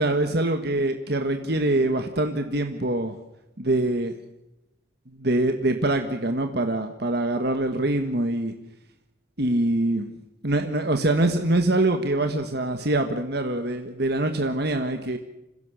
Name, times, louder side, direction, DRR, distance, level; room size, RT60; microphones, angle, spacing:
voice 1, 0.0-3.2 3.6-4.1 5.2-8.5 9.4-10.1 10.4-15.2, right 2 dB, 55° right, 6 dB, 1.5 m, -24 dB
26.5 x 16.5 x 6.7 m, 0.91 s
head